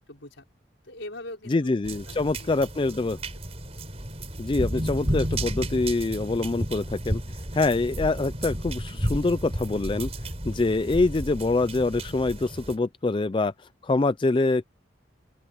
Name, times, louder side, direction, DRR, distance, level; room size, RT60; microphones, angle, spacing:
voice 1, 0.1-0.5 0.8-1.7 2.1-3.3, left 1 dB, 75° left, 5.6 m, -43 dB
voice 2, 1.5-3.2 4.4-7.2 7.5-10.1 10.4-13.5 13.8-14.7, left 3 dB, 25° left, 0.4 m, -25 dB
sound 1, 1.8-12.8, right 1 dB, 35° right, 5.0 m, -32 dB
open air
head